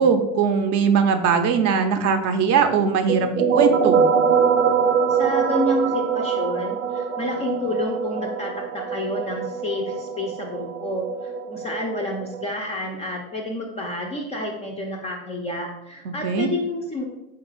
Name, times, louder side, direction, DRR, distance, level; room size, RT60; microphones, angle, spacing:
voice 1, 0.0-4.0 16.1-16.5, right 6 dB, 40° right, 7 dB, 0.5 m, -20 dB
sound 1, 3.1-12.5, right 6 dB, 90° right, 0.6 m, -23 dB
voice 2, 5.1-17.0, left 1 dB, 15° left, 1 dB, 0.3 m, -29 dB
4.4 x 2.3 x 4.8 m, 0.93 s
hypercardioid pair, 110°, 41 cm